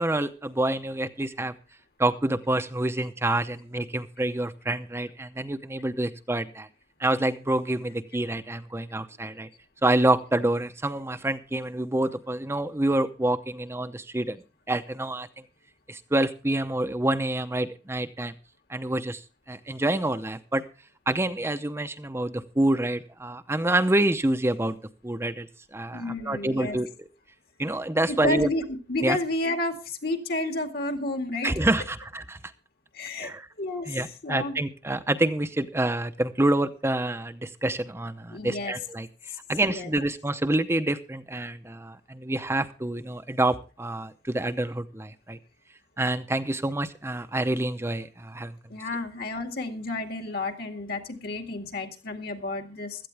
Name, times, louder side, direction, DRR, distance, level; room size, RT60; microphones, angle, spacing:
voice 1, 0.0-1.5 2.0-6.7 7.0-9.5 9.8-14.4 14.7-15.3 15.9-18.3 18.7-19.2 19.5-20.6 21.1-24.8 25.0-25.5 25.7-26.9 27.6-28.5 29.0-29.2 31.4-32.4 33.2-33.5 33.9-39.1 39.5-45.4 46.0-48.5, right 1 dB, 15° right, 9 dB, 0.7 m, -27 dB
voice 2, 25.9-26.8 28.1-31.5 32.9-33.3 33.6-34.6 38.3-38.7 39.3-39.4 39.7-39.9 48.7-53.1, left 2 dB, 60° left, 6 dB, 2.2 m, -31 dB
16.5 x 13.0 x 3.4 m, 0.33 s
head